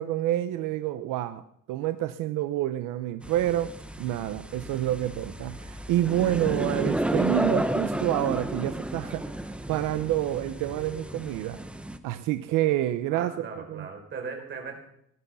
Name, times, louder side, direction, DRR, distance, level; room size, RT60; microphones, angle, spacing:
voice 1, 0.0-1.4 1.7-3.7 4.0-11.6 12.0-13.9, right 13 dB, 80° right, 10 dB, 1.0 m, -28 dB
sound 1, 3.2-12.0, right 1 dB, 5° right, 0.9 m, -32 dB
voice 2, 13.1-14.8, right 5 dB, 35° right, 3 dB, 4.3 m, -38 dB
19.5 x 12.0 x 5.6 m, 0.73 s
cardioid pair, 165°, 31 cm